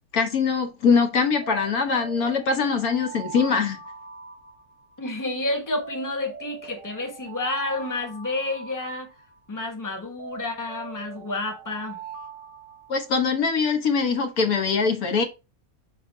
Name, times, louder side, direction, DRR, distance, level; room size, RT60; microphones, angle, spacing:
voice 1, 0.1-3.8 12.9-15.2, left 5 dB, 75° left, 1.5 m, -22 dB
Alarm, 1.4-5.1 5.8-9.5 10.2-13.4, right 5 dB, 50° left, 3.8 m, -42 dB
voice 2, 5.0-9.1 9.5-12.0, left 2 dB, 15° left, 1.1 m, -30 dB
5.9 x 3.7 x 4.2 m
omnidirectional pair, 1.6 m